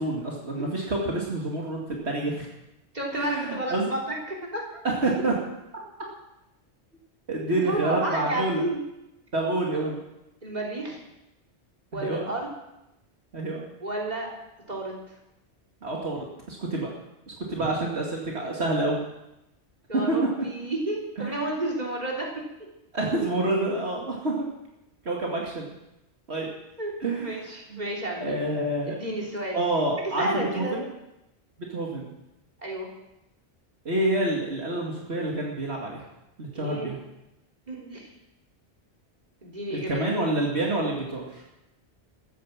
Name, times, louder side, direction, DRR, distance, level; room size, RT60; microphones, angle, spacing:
voice 1, 0.0-2.5 3.1-3.9 4.8-5.4 7.3-8.6 9.3-10.0 12.0-12.2 13.3-13.6 15.8-16.9 17.3-19.0 20.1-20.2 21.2-21.3 22.9-24.5 25.0-25.7 26.3-26.5 27.0-27.4 27.7-27.8 28.2-29.0 29.5-30.8 31.6-32.1 33.8-36.0 36.4-37.0 39.7-41.4, right 2 dB, 70° right, -2 dB, 2.5 m, -28 dB
voice 2, 2.9-4.6 7.5-8.8 9.7-9.9 10.4-11.0 11.9-12.5 13.8-14.3 14.7-15.0 17.6-17.7 19.9-22.3 26.8-26.9 27.2-28.4 28.9-29.6 30.2-30.8 32.6-32.9 36.5-37.0 37.7-38.0 39.4-40.0, right 1 dB, 40° right, -2 dB, 3.6 m, -31 dB
14.0 x 10.0 x 7.4 m, 0.90 s
omnidirectional pair, 1.1 m